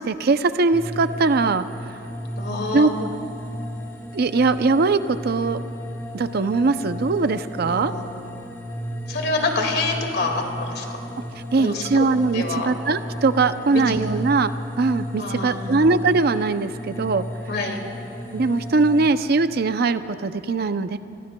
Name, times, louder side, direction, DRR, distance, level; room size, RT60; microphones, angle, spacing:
voice 1, 0.0-2.0 2.7-2.9 4.1-5.6 6.1-7.9 11.5-17.3 18.3-21.0, right 3 dB, 55° right, 11 dB, 0.5 m, -21 dB
sound 1, 0.7-19.1, equal, 15° left, 2.2 m, -34 dB
voice 2, 2.4-2.9 7.6-8.0 9.1-10.9 11.6-12.0 12.3-12.7 13.7-14.1 15.2-15.9 17.5-17.8, left 3 dB, 60° left, 2 dB, 2.1 m, -27 dB
27.5 x 22.0 x 2.3 m, 2.9 s
head